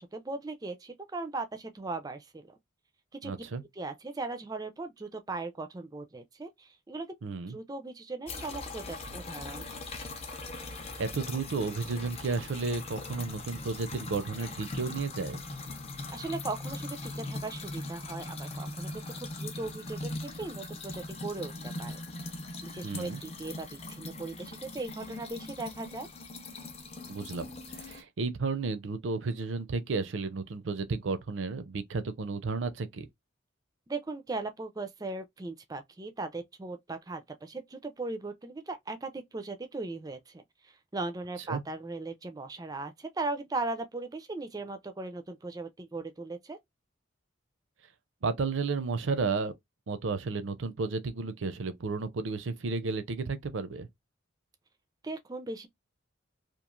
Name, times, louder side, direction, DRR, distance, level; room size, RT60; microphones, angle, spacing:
voice 1, 0.0-2.5 3.1-3.3 3.8-7.1 7.5-9.7 16.1-18.9 19.2-22.0 22.6-26.1 33.9-46.6 55.0-55.7, right 3 dB, 20° right, 0.4 m, -38 dB
voice 2, 3.2-3.6 7.2-7.6 11.0-15.4 22.8-23.2 27.1-33.1 41.5-41.6 48.2-49.5 49.9-53.9, right 4 dB, 70° right, 0.5 m, -33 dB
sound 1, 8.3-28.0, left 2 dB, 30° left, 0.6 m, -40 dB
3.0 x 2.4 x 2.4 m
head